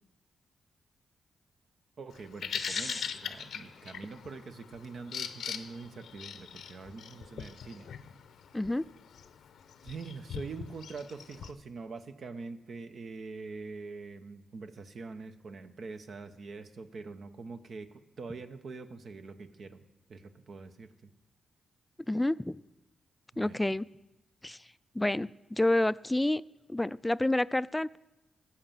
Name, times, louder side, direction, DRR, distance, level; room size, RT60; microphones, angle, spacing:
voice 1, 2.0-7.9 9.8-19.8 20.1-21.1 23.3-23.6, right 4 dB, 65° right, 8 dB, 0.9 m, -44 dB
Bird vocalization bird call bird song, 2.1-11.5, left 7 dB, 80° left, 0.7 m, -42 dB
voice 2, 2.5-3.1 8.5-8.9 22.1-22.6 23.4-23.9 24.4-24.7 24.9-26.4 26.7-28.0, left 1 dB, 15° left, 18 dB, 0.3 m, -29 dB
14.5 x 5.8 x 7.5 m, 0.99 s
supercardioid pair, 50°, 0 cm